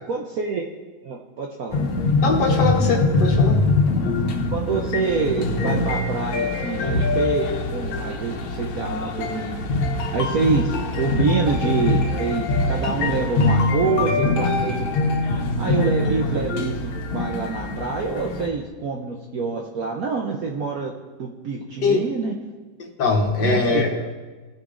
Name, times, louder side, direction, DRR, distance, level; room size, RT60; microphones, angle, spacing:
voice 1, 0.1-0.6 1.0-1.8 4.5-9.7 10.1-14.9 15.6-16.7 17.1-20.9 21.2-22.3 23.4-23.8, right 4 dB, 65° right, 0 dB, 0.9 m, -26 dB
sound 1, 1.7-18.5, left 2 dB, 85° left, 1.7 m, -23 dB
voice 2, 2.2-3.6 21.8-22.0 22.8-23.9, left 4 dB, 60° left, 1 dB, 1.6 m, -21 dB
18.0 x 6.6 x 2.5 m, 1.3 s
omnidirectional pair, 2.2 m